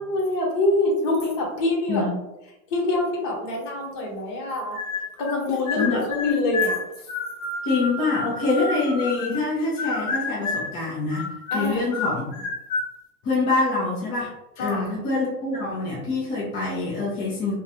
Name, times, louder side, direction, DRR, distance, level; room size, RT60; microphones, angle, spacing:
voice 1, 0.0-2.0 2.7-4.8 5.2-6.8 11.5-11.8 14.6-14.9, left 2 dB, 50° left, -1 dB, 1.0 m, -25 dB
sound 1, 4.7-5.4 5.7-9.5 9.8-10.8 11.1-12.9, left 4 dB, 65° left, 0.7 m, -29 dB
voice 2, 5.7-6.1 7.6-11.3 11.5-12.4 13.2-14.3 14.6-17.5, left 3 dB, 20° left, -5 dB, 0.3 m, -25 dB
2.3 x 2.1 x 2.8 m, 0.93 s
hypercardioid pair, 125°, 46 cm